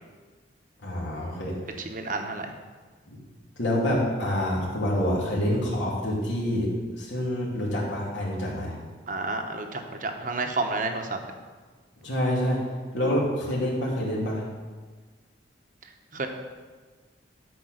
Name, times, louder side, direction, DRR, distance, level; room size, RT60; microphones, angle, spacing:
voice 1, 0.8-1.5 3.1-3.2 3.6-6.7 7.0-8.7 12.0-12.6 12.9-14.4, left 1 dB, 80° left, -4 dB, 3.0 m, -27 dB
voice 2, 1.8-2.6 9.1-11.2 16.1-16.3, right 3 dB, 45° right, 5 dB, 1.0 m, -30 dB
12.0 x 4.8 x 6.4 m, 1.4 s
head